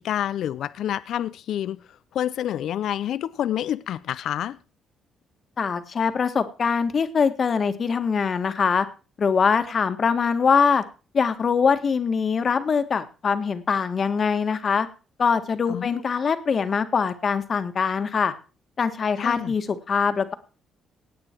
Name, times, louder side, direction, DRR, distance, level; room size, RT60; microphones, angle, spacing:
voice 1, 0.0-1.8 2.1-4.6 15.7-16.0 19.2-19.5, left 11 dB, 75° left, 0.5 m, -28 dB
voice 2, 5.6-8.9 9.2-10.8 11.1-14.9 15.2-18.3 18.8-20.3, left 6 dB, 45° left, 1.6 m, -23 dB
18.0 x 8.8 x 4.5 m
cardioid pair, 90°, 0 cm